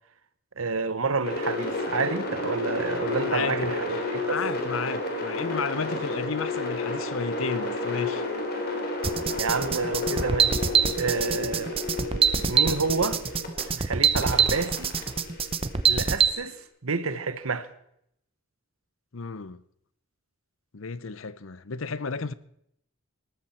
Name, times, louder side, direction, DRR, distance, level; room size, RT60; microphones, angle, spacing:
voice 1, 0.6-4.4 9.3-10.6 10.9-11.8 12.5-13.2 13.6-14.9 15.8-16.6 16.8-17.7, right 4 dB, 85° right, 1.1 m, -29 dB
sound 1, 1.2-13.6 14.2-16.3, left 2 dB, 45° left, 3.5 m, -31 dB
voice 2, 3.3-3.8 4.2-8.2 19.1-19.6 20.7-22.3, left 5 dB, 70° left, 0.7 m, -32 dB
sound 2, 9.0-16.3, right 7 dB, 25° right, 0.7 m, -24 dB
19.0 x 14.0 x 4.4 m
head